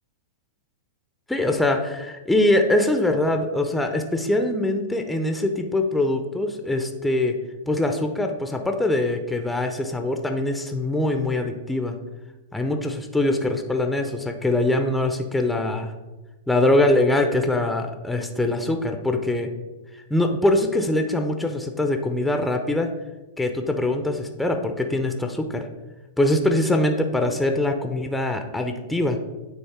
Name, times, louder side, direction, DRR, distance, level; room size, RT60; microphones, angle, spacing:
voice 1, 1.3-7.4 7.7-11.9 12.5-15.9 16.5-19.5 20.1-22.9 23.4-25.7 26.2-29.2, left 1 dB, 5° left, 5 dB, 0.6 m, -23 dB
8.8 x 3.2 x 4.3 m, 1.1 s
hypercardioid pair, 110°, 0 cm